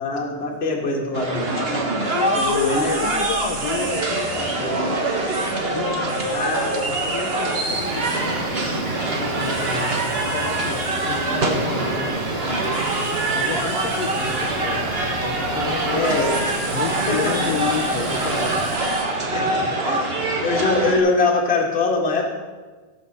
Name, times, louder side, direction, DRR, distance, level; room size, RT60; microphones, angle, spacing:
voice 1, 0.0-1.6 2.4-3.0 6.3-7.0 9.6-9.9 14.1-14.2 15.9-17.5 18.8-19.0 19.3-22.3, left 3 dB, 25° left, -1 dB, 1.5 m, -24 dB
sound 1, 1.1-21.0, right 2 dB, 85° right, 0.5 m, -24 dB
sound 2, 2.0-19.0, right 3 dB, 55° right, 2.6 m, -35 dB
voice 2, 2.1-2.7 3.0-5.0 5.7-8.8 9.1-12.9 13.3-16.2 16.7-18.9 19.8-19.9, left 10 dB, 90° left, 5 dB, 1.4 m, -32 dB
sound 3, 7.6-18.8, right 3 dB, 40° right, 1.4 m, -34 dB
15.5 x 5.3 x 6.6 m, 1.3 s
omnidirectional pair, 3.6 m